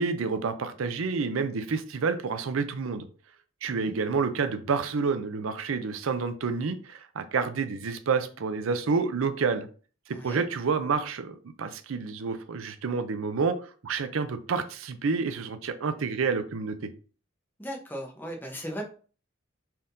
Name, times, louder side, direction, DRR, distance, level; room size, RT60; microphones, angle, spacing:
voice 1, 0.0-3.1 3.6-9.7 10.1-16.8, right 5 dB, 80° right, 10 dB, 0.5 m, -29 dB
voice 2, 10.1-10.4 17.6-18.8, equal, 10° left, 1 dB, 0.7 m, -37 dB
4.3 x 3.6 x 2.5 m, 0.39 s
head